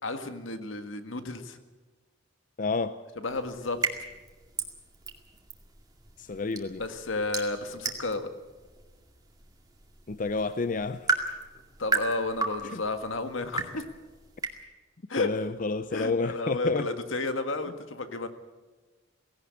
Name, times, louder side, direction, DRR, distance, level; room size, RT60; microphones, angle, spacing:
voice 1, 0.0-1.6 3.2-3.8 6.8-8.3 11.8-13.8 15.1-15.3 15.9-18.3, left 2 dB, 80° left, 1.8 m, -32 dB
voice 2, 2.6-3.0 6.2-6.8 10.1-11.1 12.7-12.8 15.2-16.9, left 3 dB, 40° left, 0.5 m, -29 dB
sound 1, 3.3-14.6, right 3 dB, 20° right, 2.2 m, -36 dB
17.5 x 17.5 x 8.4 m
head